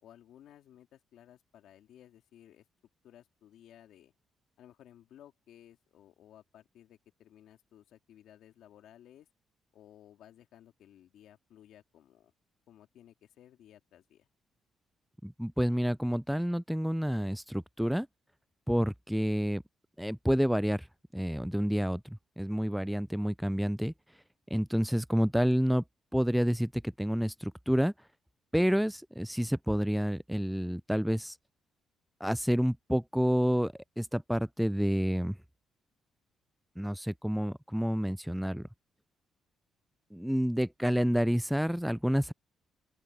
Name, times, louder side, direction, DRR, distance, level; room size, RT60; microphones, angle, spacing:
voice 1, 0.0-2.6 3.0-4.1 4.6-9.3 9.7-12.3 12.7-14.3, left 11 dB, 80° left, 2.8 m, -57 dB
voice 2, 15.2-18.1 18.7-19.6 20.0-20.9 21.1-23.9 24.5-25.8 26.1-27.9 28.5-31.4 32.2-35.4 36.8-38.7 40.1-42.3, equal, ahead, 0.3 m, -29 dB
open air
cardioid pair, 90°, 0 cm